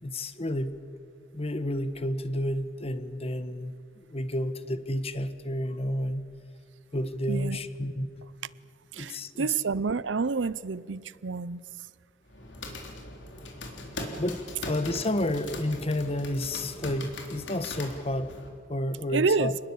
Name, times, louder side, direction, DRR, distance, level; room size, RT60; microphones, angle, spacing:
voice 1, 0.0-0.7 1.3-6.3 6.9-8.1 9.0-9.5 14.2-18.4 18.7-19.5, left 1 dB, 35° left, 1.3 m, -31 dB
voice 2, 7.3-7.6 8.9-11.6 19.1-19.6, right 4 dB, 90° right, 0.7 m, -28 dB
sound 1, 12.3-18.5, left 2 dB, 80° left, 3.8 m, -40 dB
28.5 x 20.0 x 8.6 m
head